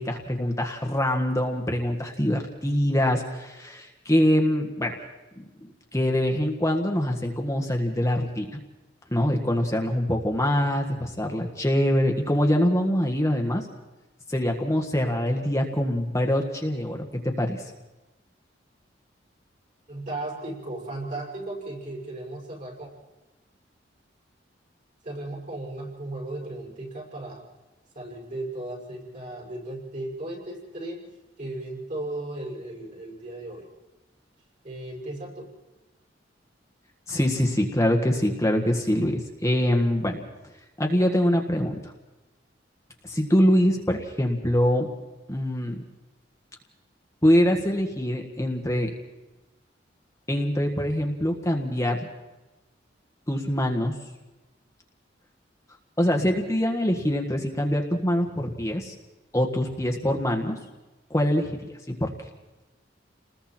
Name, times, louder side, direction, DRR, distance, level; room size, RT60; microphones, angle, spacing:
voice 1, 0.0-5.0 5.4-5.5 5.9-8.6 9.1-13.7 14.3-17.6 37.1-40.2 40.8-41.9 43.0-44.9 45.3-45.8 47.2-48.9 50.3-52.1 53.3-53.9 56.0-58.9 59.3-60.6 61.1-61.5 61.9-62.1, equal, 15° left, 2 dB, 1.7 m, -24 dB
voice 2, 19.9-22.9 25.0-27.4 27.9-31.1 31.4-33.7 34.6-35.5, right 2 dB, 45° right, -2 dB, 6.2 m, -36 dB
29.5 x 20.5 x 4.4 m, 1.1 s
head